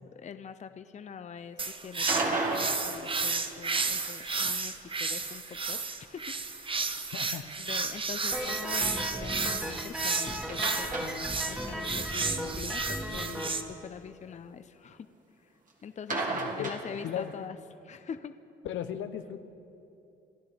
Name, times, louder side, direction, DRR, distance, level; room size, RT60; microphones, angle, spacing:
voice 1, 0.0-7.1 7.6-15.1 15.8-17.6 17.8-18.4, left 7 dB, 35° left, 11 dB, 0.6 m, -44 dB
sound 1, 1.6-13.6, right 4 dB, 25° right, 0.8 m, -32 dB
sound 2, 1.9-4.1 10.5-11.7 12.0-12.1 12.5-12.6 16.1-17.4, right 3 dB, 40° right, 2.0 m, -34 dB
voice 2, 7.1-7.5 16.3-17.3 18.6-19.4, left 9 dB, 75° left, 10 dB, 0.8 m, -37 dB
sound 3, 8.3-13.5, equal, 5° right, 2.0 m, -36 dB
28.0 x 12.0 x 3.4 m, 2.8 s
cardioid pair, 90°, 20 cm